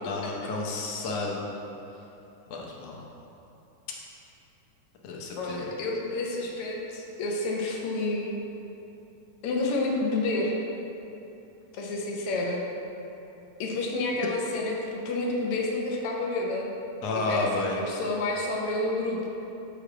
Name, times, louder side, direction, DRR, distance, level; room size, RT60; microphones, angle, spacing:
voice 1, 0.1-1.4 2.5-3.0 5.0-5.7 17.0-17.8, left 3 dB, 70° left, -1 dB, 1.6 m, -31 dB
voice 2, 5.4-8.4 9.4-10.5 11.7-12.6 13.6-16.7 17.1-19.2, left 2 dB, 90° left, -2 dB, 1.2 m, -29 dB
7.5 x 3.4 x 4.8 m, 2.9 s
omnidirectional pair, 3.5 m